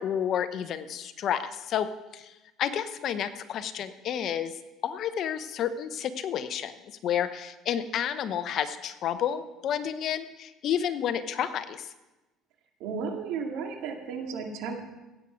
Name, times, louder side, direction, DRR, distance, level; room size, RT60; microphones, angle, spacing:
voice 1, 0.0-2.3 2.6-4.5 4.8-6.7 7.0-11.9, left 9 dB, 50° left, 11 dB, 0.8 m, -30 dB
voice 2, 12.8-14.8, right 5 dB, 75° right, 3 dB, 2.1 m, -34 dB
16.5 x 8.4 x 5.1 m, 1.1 s
cardioid pair, 130°, 0 cm